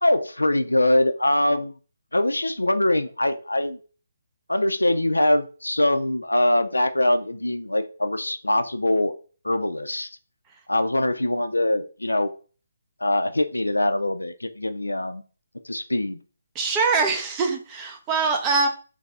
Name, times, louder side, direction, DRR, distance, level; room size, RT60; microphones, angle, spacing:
voice 1, 0.0-1.8 2.1-3.8 4.5-9.1 9.4-10.1 10.7-12.3 13.0-15.2 15.6-16.2, left 1 dB, 85° left, 10 dB, 0.4 m, -23 dB
voice 2, 16.5-18.7, right 4 dB, 20° right, 3 dB, 0.5 m, -23 dB
3.2 x 2.7 x 3.5 m, 0.37 s
figure-of-eight pair, 145°, 0 cm